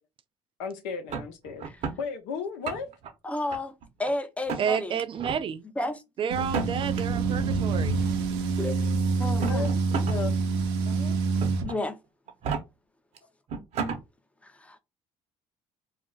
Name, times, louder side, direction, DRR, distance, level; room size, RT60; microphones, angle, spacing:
voice 1, 0.6-1.7 2.0-2.9 9.4-10.3 10.8-11.2, left 5 dB, 85° left, 0.7 m, -35 dB
sound 1, 1.1-2.0 2.5-3.1 3.5-4.1 4.5-4.6 5.1-5.4 6.4-7.0 8.1-8.2 9.2-10.2 10.6-10.7 11.4-11.8 12.3-12.6 13.2-13.3 13.5-14.0, right 5 dB, 60° right, 0.8 m, -32 dB
voice 2, 3.2-3.7 4.0-5.0 5.8-6.0 8.6-9.7 11.6-12.0 14.4-14.8, left 2 dB, 10° left, 0.6 m, -32 dB
voice 3, 4.6-5.6 6.2-8.0, right 7 dB, 40° right, 0.4 m, -30 dB
sound 2, 6.3-11.7, right 4 dB, 90° right, 0.6 m, -26 dB
2.4 x 2.1 x 3.8 m
supercardioid pair, 80°, 13 cm